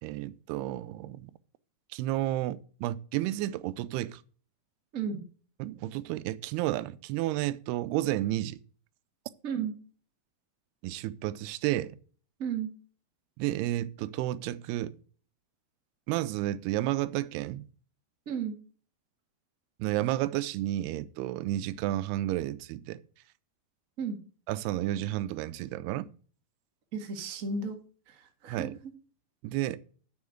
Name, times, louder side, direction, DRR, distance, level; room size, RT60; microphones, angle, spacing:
voice 1, 0.0-1.3 1.9-4.2 5.6-8.6 10.8-12.0 13.4-15.0 16.1-17.7 19.8-23.0 24.5-26.1 28.5-28.7 29.4-29.8, right 15 dB, 90° right, 2.6 m, -31 dB
voice 2, 26.9-27.8 28.1-28.7, right 5 dB, 45° right, 1.0 m, -33 dB
7.4 x 7.0 x 7.7 m
omnidirectional pair, 4.5 m